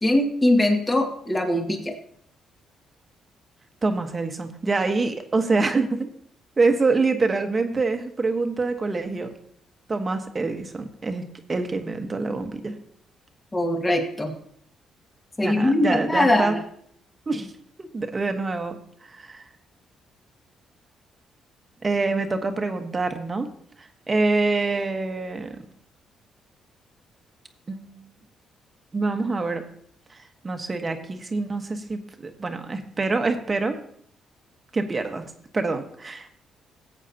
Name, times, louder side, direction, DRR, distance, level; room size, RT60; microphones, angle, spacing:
voice 1, 0.0-2.0 13.5-14.3 15.4-16.6, left 1 dB, 20° left, 3 dB, 2.0 m, -21 dB
voice 2, 3.8-6.1 6.6-9.3 9.9-12.8 15.4-16.5 17.3-17.5 17.8-19.4 21.8-23.5 23.8-25.6 27.7-28.1 28.9-29.6 30.1-33.8 34.7-35.3 35.5-36.3, right 3 dB, 30° right, 6 dB, 1.3 m, -26 dB
17.0 x 8.3 x 2.9 m, 0.64 s
cardioid pair, 90°, 0 cm